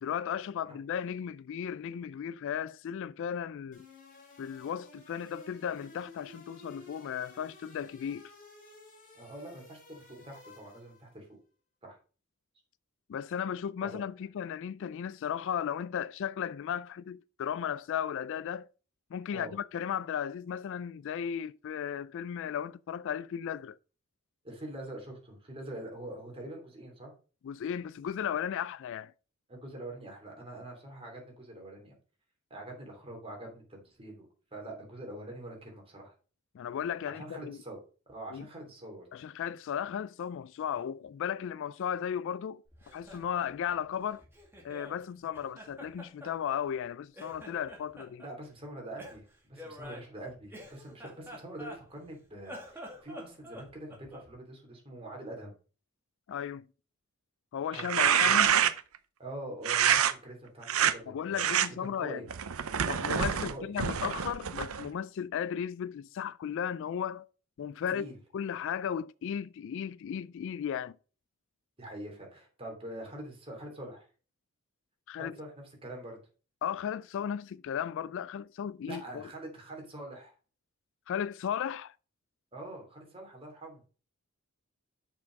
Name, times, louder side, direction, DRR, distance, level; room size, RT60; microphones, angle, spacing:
voice 1, 0.0-3.9 4.4-8.3 13.1-18.7 19.1-23.8 27.4-29.1 36.5-37.6 38.3-38.5 39.1-44.2 44.6-48.2 56.3-56.7 57.5-58.5 61.1-62.2 62.9-67.3 67.6-68.1 68.3-71.0 75.1-75.4 76.6-79.3 81.1-81.9, left 8 dB, 60° left, 0.3 m, -35 dB
sound 1, 3.7-11.1, left 2 dB, 40° left, 3.4 m, -54 dB
voice 2, 9.1-11.2 11.8-12.0 13.8-14.0 19.3-19.5 24.4-27.1 29.5-31.9 32.5-36.1 37.1-37.8 38.1-39.1 48.2-55.5 57.7-58.6 59.2-62.2 63.5-63.7 67.9-68.2 71.8-74.1 75.2-75.5 75.8-76.2 78.9-80.3 82.5-83.8, right 1 dB, 25° right, 3.1 m, -44 dB
Laughter, 42.7-45.0 45.3-46.9 47.1-48.3 49.0-52.1 52.4-54.3, left 1 dB, 10° right, 2.2 m, -48 dB
sound 2, 57.7-59.0 59.6-60.1 60.6-60.9 61.4-61.7 62.3-64.9, right 9 dB, 80° right, 0.6 m, -26 dB
6.7 x 6.0 x 5.2 m
head